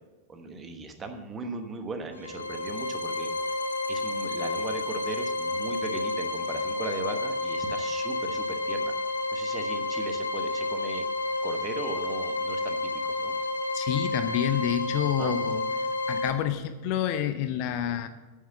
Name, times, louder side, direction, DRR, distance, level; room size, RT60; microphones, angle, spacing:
voice 1, 0.3-3.3 3.9-8.9 9.3-11.0 11.4-13.4 15.2-15.3, right 3 dB, 20° right, 6 dB, 1.1 m, -38 dB
sound 1, 2.1-16.3, left 2 dB, 80° left, 0.9 m, -30 dB
voice 2, 13.7-15.6 16.1-18.1, left 10 dB, 45° left, 10 dB, 0.6 m, -28 dB
9.3 x 6.7 x 6.8 m, 1.2 s
figure-of-eight pair, 90°, 0 cm